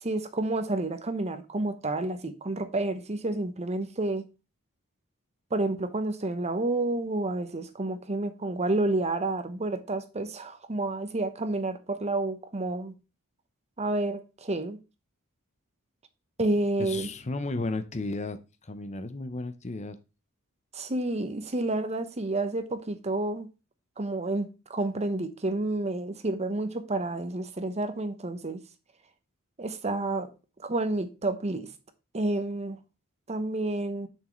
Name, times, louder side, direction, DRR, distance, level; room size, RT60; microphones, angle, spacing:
voice 1, 0.0-4.2 5.5-12.9 13.8-14.8 16.4-17.1 20.7-23.5 24.0-28.6 29.6-30.3 30.6-31.7 32.1-32.8 33.3-34.1, right 2 dB, 30° right, 0.9 m, -30 dB
voice 2, 16.8-20.0, left 2 dB, 30° left, 0.7 m, -34 dB
7.2 x 6.2 x 3.1 m
head